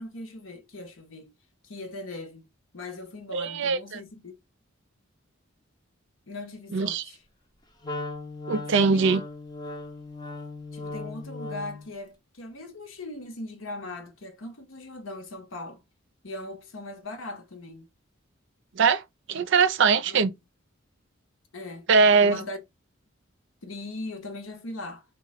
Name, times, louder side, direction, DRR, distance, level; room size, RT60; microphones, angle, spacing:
voice 1, 0.0-1.3 1.6-2.5 2.7-4.4 6.3-7.2 8.7-9.2 10.7-15.8 16.2-17.9 20.0-20.3 21.5-21.9 22.2-22.6 23.6-25.0, left 2 dB, 70° left, 0.9 m, -39 dB
voice 2, 3.3-3.8 6.7-7.0 8.5-9.2 18.8-19.0 19.3-20.3 21.9-22.4, right 5 dB, 65° right, 0.4 m, -21 dB
Wind instrument woodwind instrument, 7.8-11.9, left 2 dB, 20° left, 0.6 m, -37 dB
2.9 x 2.2 x 4.1 m
head